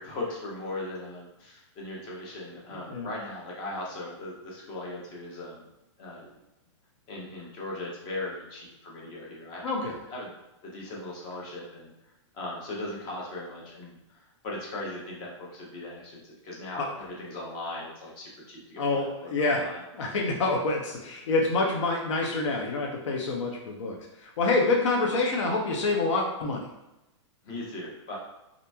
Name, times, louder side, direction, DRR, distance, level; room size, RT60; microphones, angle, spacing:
voice 1, 0.0-5.7 6.0-6.3 7.1-9.6 10.1-10.3 10.6-11.9 12.3-19.8 27.4-28.2, left 2 dB, 30° left, -3 dB, 0.7 m, -38 dB
voice 2, 9.6-10.0 16.8-16.9 18.8-19.6 19.9-26.7, left 3 dB, 75° left, 0 dB, 0.6 m, -27 dB
2.9 x 2.5 x 2.2 m, 0.94 s
hypercardioid pair, 150°, 16 cm